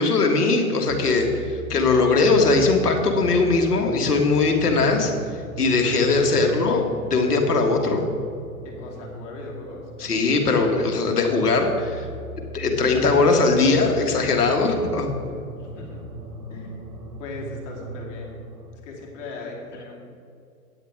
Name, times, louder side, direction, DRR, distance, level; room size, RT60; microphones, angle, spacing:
voice 1, 0.0-5.1 5.6-8.0 10.0-12.1 12.5-15.1, left 3 dB, 85° left, 3 dB, 1.8 m, -20 dB
sound 1, 0.9-18.7, right 1 dB, 70° right, 2.4 m, -38 dB
voice 2, 8.6-9.9 15.6-16.0 16.5-16.8 17.2-18.4 18.8-20.0, left 3 dB, 50° left, -2 dB, 2.8 m, -38 dB
9.6 x 8.2 x 4.8 m, 2.3 s
hypercardioid pair, 120°, 45 cm